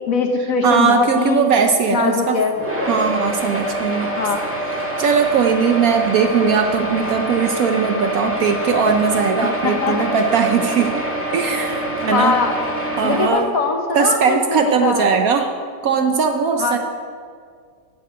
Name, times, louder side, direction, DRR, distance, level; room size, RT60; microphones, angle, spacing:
voice 1, 0.1-1.5 1.9-2.5 4.2-4.4 9.4-10.0 12.1-12.5 13.0-15.1 16.6-16.8, left 4 dB, 55° left, 3 dB, 1.2 m, -21 dB
voice 2, 0.6-2.4 2.9-4.1 5.0-11.0 11.3-12.3 13.0-13.5 13.9-15.5 15.8-16.8, right 6 dB, 65° right, 5 dB, 0.9 m, -19 dB
sound 1, 2.5-13.3, right 1 dB, 10° right, 1.3 m, -25 dB
9.9 x 6.6 x 7.8 m, 2.1 s
omnidirectional pair, 1.9 m